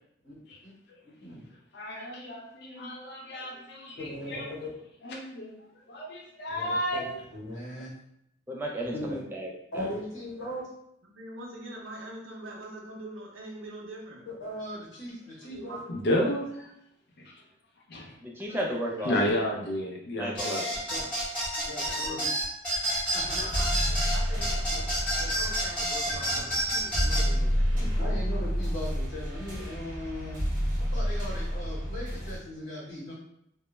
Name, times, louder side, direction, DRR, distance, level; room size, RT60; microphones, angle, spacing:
voice 1, 1.0-1.4 4.0-4.7 6.5-7.9 8.9-9.2 9.7-10.6 14.3-15.8 20.9-21.0 21.7-22.3 23.1-23.6 27.8-30.4 30.8-33.1, left 1 dB, 85° left, -7 dB, 1.0 m, -38 dB
voice 2, 1.7-4.5 5.0-5.6 5.9-7.0 15.9-16.5 17.2-17.3 17.9-18.1 19.1-20.7, left 1 dB, 55° left, -1 dB, 0.4 m, -31 dB
voice 3, 8.5-9.8 18.2-19.2 20.2-20.7, right 1 dB, 10° right, -1 dB, 0.3 m, -34 dB
voice 4, 11.0-14.2 15.4-15.9 20.1-20.4 21.8-22.2 23.3-24.9 25.2-28.1, right 1 dB, 90° right, -2 dB, 0.6 m, -44 dB
sound 1, 20.4-27.3, right 1 dB, 5° left, 0.8 m, -29 dB
sound 2, 23.2-32.4, equal, 40° right, 0.7 m, -30 dB
2.2 x 2.1 x 3.0 m, 0.75 s
head